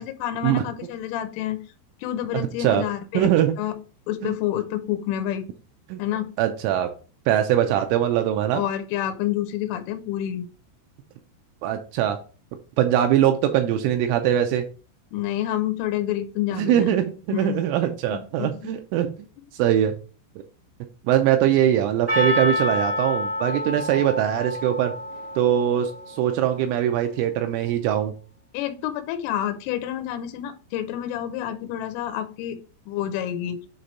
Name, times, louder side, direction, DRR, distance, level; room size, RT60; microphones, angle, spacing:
voice 1, 0.0-1.6 2.0-3.3 3.6-3.7 4.1-5.5 6.0-6.3 8.5-10.5 15.1-16.9 17.3-17.6 18.1-18.7 28.5-32.6 32.9-33.6, left 11 dB, 85° left, 8 dB, 3.2 m, -28 dB
voice 2, 2.3-2.9 3.1-3.5 4.2-4.4 5.9-6.0 6.4-6.9 7.3-8.6 11.6-12.2 12.8-14.6 16.5-19.1 19.6-19.9 21.0-24.9 25.4-28.1, right 11 dB, 85° right, 6 dB, 3.0 m, -22 dB
Percussion, 22.1-26.6, left 1 dB, 35° right, 0.8 m, -28 dB
8.0 x 3.4 x 4.0 m, 0.37 s
omnidirectional pair, 5.9 m